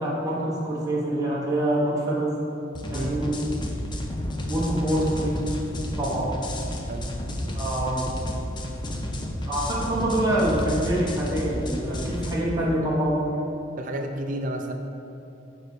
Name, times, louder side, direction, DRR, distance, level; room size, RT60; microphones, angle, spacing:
voice 1, 0.0-2.4 2.9-3.4 4.5-5.6 6.0-6.4 7.5-8.0 9.5-13.2, right 1 dB, 20° right, -7 dB, 1.2 m, -25 dB
sound 1, 2.7-12.3, left 1 dB, 25° left, 0.7 m, -31 dB
voice 2, 2.9-3.3 6.9-7.1 13.8-14.7, right 1 dB, 45° right, 3 dB, 0.6 m, -31 dB
10.0 x 4.0 x 4.7 m, 2.9 s
head